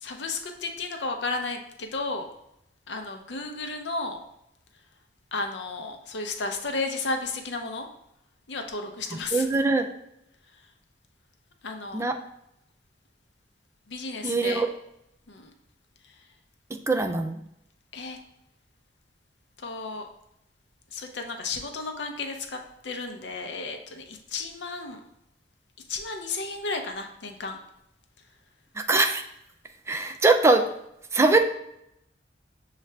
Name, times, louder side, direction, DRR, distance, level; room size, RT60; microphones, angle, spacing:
voice 1, 0.0-2.3 2.9-4.2 5.3-7.9 8.5-9.5 11.6-12.0 13.9-14.6 15.3-15.5 16.0-16.2 17.9-18.2 19.6-20.1 20.9-25.0 25.9-27.6, left 3 dB, 75° left, 5 dB, 0.6 m, -33 dB
voice 2, 9.3-9.9 11.9-12.2 14.2-14.7 16.9-17.4 28.8-29.2 29.9-30.6 31.1-31.4, right 3 dB, 15° right, 6 dB, 0.3 m, -22 dB
6.5 x 2.4 x 3.2 m, 0.79 s
head